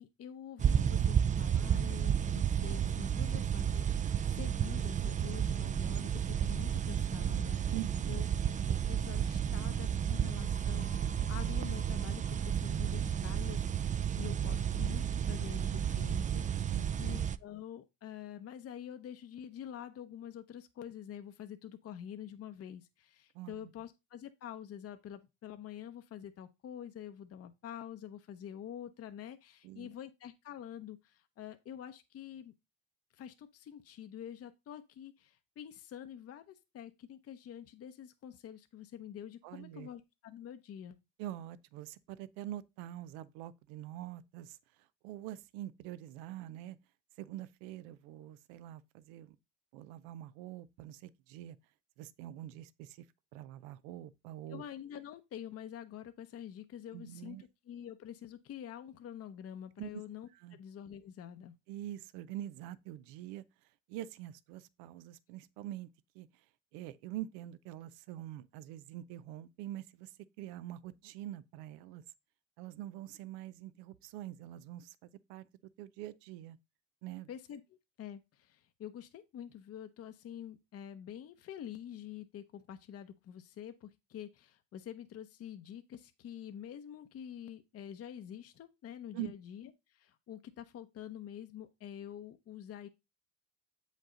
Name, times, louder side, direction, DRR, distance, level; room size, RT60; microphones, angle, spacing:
voice 1, 0.0-7.7 8.1-13.6 14.2-32.5 33.1-41.0 54.5-61.5 77.3-77.6 78.0-92.9, left 10 dB, 45° left, 0.7 m, -47 dB
sound 1, 0.6-17.4, right 9 dB, 25° right, 0.3 m, -32 dB
voice 2, 7.7-8.2 16.7-17.1 23.3-23.7 29.6-29.9 39.4-39.9 41.2-46.8 47.2-49.4 49.7-51.6 52.0-53.1 53.3-54.6 56.9-57.4 59.8-60.0 60.3-60.6 61.7-63.4 63.9-65.9 66.1-66.4 66.7-70.1 70.4-72.0 72.6-75.5 75.8-76.6 77.0-77.3 89.1-89.3, right 13 dB, 85° right, 0.6 m, -45 dB
sound 2, 10.4-14.2, left 5 dB, 25° left, 1.1 m, -59 dB
7.5 x 5.3 x 3.7 m
supercardioid pair, 80°, 33 cm